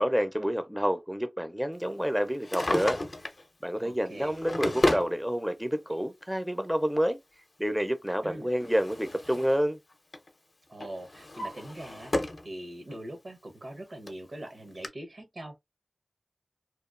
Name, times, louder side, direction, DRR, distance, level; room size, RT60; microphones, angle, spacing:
voice 1, 0.0-3.0 3.6-7.2 7.6-9.8, equal, 5° right, 0.5 m, -28 dB
Drawer open or close, 2.3-3.4 4.2-5.1 6.2-6.3 8.1-9.6 9.9-10.3 10.8-12.5 12.9-13.0 13.7-13.8 14.1-14.2 14.8-14.9, left 2 dB, 55° left, 0.6 m, -32 dB
voice 2, 3.8-4.3 8.2-8.5 10.7-15.6, right 1 dB, 70° right, 0.9 m, -42 dB
2.9 x 2.1 x 2.4 m
cardioid pair, 40°, 0 cm